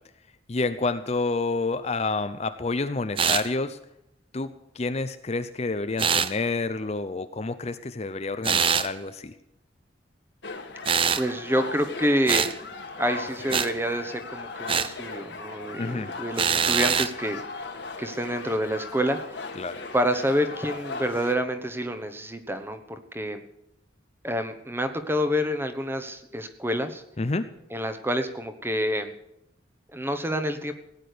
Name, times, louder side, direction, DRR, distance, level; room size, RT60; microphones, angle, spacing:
voice 1, 0.5-3.8 4.3-9.3 15.8-16.1 19.6-19.8 27.2-27.5, left 3 dB, 35° left, 10 dB, 0.6 m, -29 dB
sound 1, 3.2-3.5 6.0-6.3 8.4-8.9 10.9-11.3 12.3-12.5 13.5-13.7 14.7-14.9 16.4-17.1, right 6 dB, 25° right, 0.6 m, -23 dB
sound 2, 10.4-21.4, left 4 dB, 60° left, 1.5 m, -38 dB
voice 2, 11.2-12.6 13.0-17.4 18.0-19.5 19.9-23.4 24.2-27.0 27.7-29.1 29.9-30.7, equal, 10° right, 9 dB, 1.1 m, -28 dB
17.0 x 9.8 x 6.8 m, 0.83 s
head